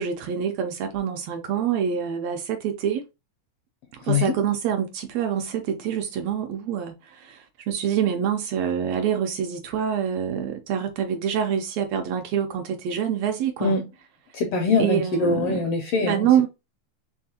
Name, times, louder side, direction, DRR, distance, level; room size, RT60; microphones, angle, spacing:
voice 1, 0.0-2.4 2.8-3.0 4.1-4.9 5.1-5.4 5.9-6.9 7.7-12.5 12.9-13.7 14.8-15.5 16.0-16.5, right 8 dB, 75° right, 1.6 m, -25 dB
voice 2, 4.0-4.3 13.6-13.9 14.3-16.5, left 4 dB, 80° left, 1.3 m, -23 dB
4.5 x 3.3 x 2.7 m
omnidirectional pair, 3.4 m